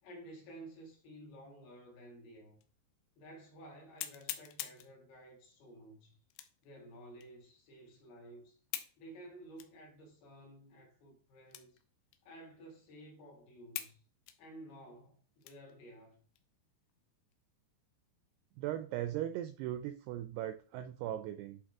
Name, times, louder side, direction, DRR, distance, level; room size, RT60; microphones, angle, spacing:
voice 1, 0.0-2.6 3.2-6.2 6.6-8.6 9.0-11.8 12.2-14.0 14.4-16.2, right 1 dB, 60° left, 4.0 m, -53 dB
sound 1, 2.6-2.7 3.2-3.3 4.0-4.9 6.3-6.7 7.2-7.3 8.7-9.0 9.6-9.7 10.4-10.5 11.5-11.8 12.1-12.2 12.9-13.0 13.8-14.0 14.3-15.8 16.3-16.4 16.9-17.3, left 13 dB, 80° left, 2.8 m, -44 dB
voice 2, 18.6-21.6, right 12 dB, 85° right, 2.4 m, -38 dB
11.5 x 3.9 x 3.6 m
omnidirectional pair, 5.2 m